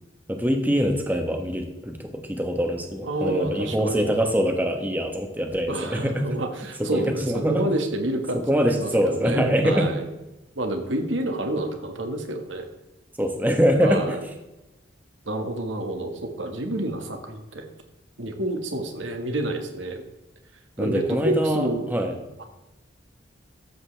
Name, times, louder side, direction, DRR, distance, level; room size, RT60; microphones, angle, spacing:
voice 1, 0.3-6.3 6.9-7.7 8.4-9.9 13.2-14.2 20.8-22.2, equal, 10° right, 4 dB, 1.2 m, -24 dB
voice 2, 3.0-4.1 5.7-10.1 10.6-12.7 13.8-14.2 15.3-17.6 18.2-20.0 20.8-21.9 22.4-22.5, right 1 dB, 85° right, 4 dB, 1.7 m, -29 dB
13.0 x 8.2 x 3.4 m, 0.99 s
head